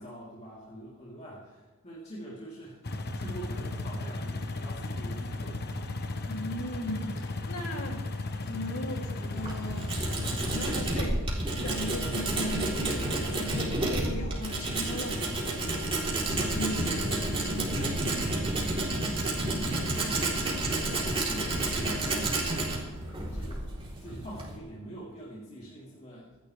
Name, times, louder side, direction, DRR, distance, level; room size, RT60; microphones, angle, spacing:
voice 1, 0.0-5.8 19.4-20.7 21.1-22.7 23.3-26.3, right 1 dB, 30° left, -7 dB, 3.3 m, -44 dB
sound 1, 2.8-10.6, left 2 dB, 50° left, 1.2 m, -35 dB
voice 2, 6.3-8.0 8.4-10.0 10.5-18.8, left 1 dB, 70° left, 1 dB, 2.9 m, -38 dB
Tools, 9.2-24.6, right 2 dB, 25° right, 3.6 m, -30 dB
26.0 x 11.0 x 3.4 m, 1.3 s
head